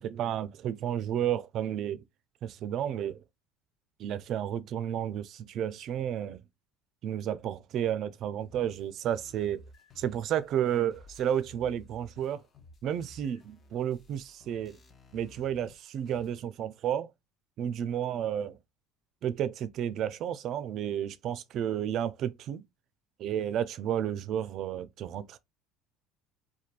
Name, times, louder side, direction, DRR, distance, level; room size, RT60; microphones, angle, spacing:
voice 1, 0.0-2.0 2.4-3.2 4.0-6.4 7.0-9.6 10.0-12.4 12.8-14.8 15.1-17.1 17.6-18.6 19.2-22.6 23.2-25.4, right 10 dB, 55° right, 0.3 m, -32 dB
sound 1, 8.4-16.4, left 2 dB, 40° left, 0.6 m, -55 dB
3.1 x 2.2 x 2.4 m
supercardioid pair, 90°, 0 cm